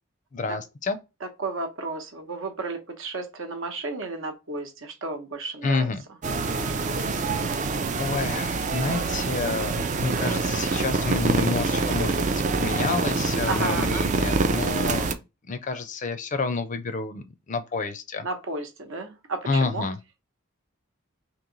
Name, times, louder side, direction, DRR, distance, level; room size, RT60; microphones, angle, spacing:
voice 1, 0.3-1.0 5.6-6.0 7.0-7.1 8.0-15.1 15.5-18.3 19.5-20.0, left 4 dB, 35° left, 0.4 m, -29 dB
voice 2, 1.4-5.9 10.1-10.4 13.5-14.0 18.2-19.8, right 3 dB, 65° right, 0.9 m, -33 dB
sound 1, 6.2-15.1, right 3 dB, 35° right, 0.4 m, -25 dB
3.1 x 2.9 x 3.8 m
head